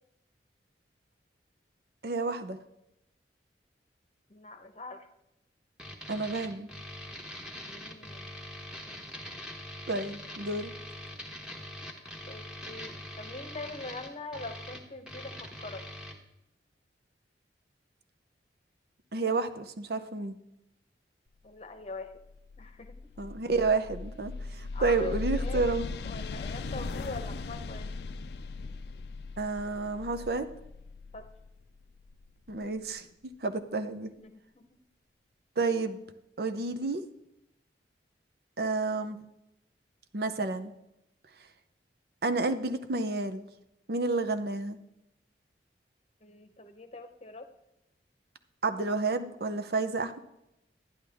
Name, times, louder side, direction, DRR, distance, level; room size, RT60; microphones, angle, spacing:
voice 1, 2.0-2.6 6.1-6.7 9.9-10.7 19.1-20.4 23.2-25.9 29.4-30.5 32.5-33.1 33.4-34.1 35.6-36.0 36.4-37.0 38.6-39.2 40.1-40.7 42.2-43.4 43.9-44.8 48.6-50.2, right 3 dB, 60° right, 9 dB, 0.7 m, -30 dB
voice 2, 4.3-5.1 7.6-8.3 12.3-15.9 21.4-22.2 22.6-23.0 24.7-25.7 26.0-27.9 31.1-31.3 34.2-34.8 46.2-47.5, left 3 dB, 35° left, 8 dB, 0.9 m, -43 dB
sound 1, 5.8-16.1, left 1 dB, 5° right, 1.2 m, -43 dB
sound 2, 22.0-32.8, left 3 dB, 65° left, 0.4 m, -38 dB
11.0 x 10.5 x 3.5 m, 0.86 s
head